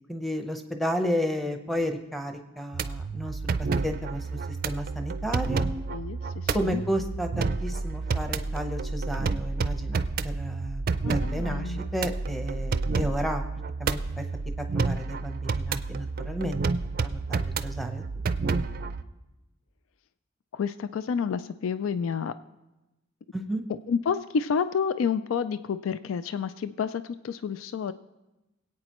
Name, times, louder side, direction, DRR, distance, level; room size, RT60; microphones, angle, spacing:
voice 1, 0.1-5.7 6.5-13.4 13.8-14.2 14.6-16.6 17.0-18.0 23.3-23.6, equal, ahead, 5 dB, 0.8 m, -32 dB
sound 1, 2.7-19.0, right 4 dB, 45° right, 0.4 m, -30 dB
voice 2, 5.9-6.8 11.0-11.8 20.5-22.4 23.9-27.9, left 6 dB, 80° left, 13 dB, 0.3 m, -29 dB
24.0 x 8.6 x 3.0 m, 1.0 s
head